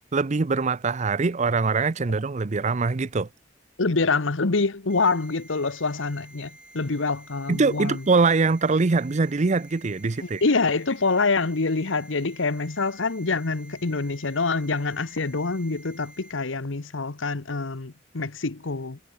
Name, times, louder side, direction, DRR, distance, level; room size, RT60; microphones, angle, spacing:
voice 1, 0.0-3.3 7.5-10.4, right 4 dB, 40° right, 0.6 m, -23 dB
voice 2, 3.8-8.0 10.2-19.0, left 3 dB, 85° left, 1.1 m, -26 dB
sound 1, 4.9-16.3, right 1 dB, 5° right, 5.5 m, -51 dB
head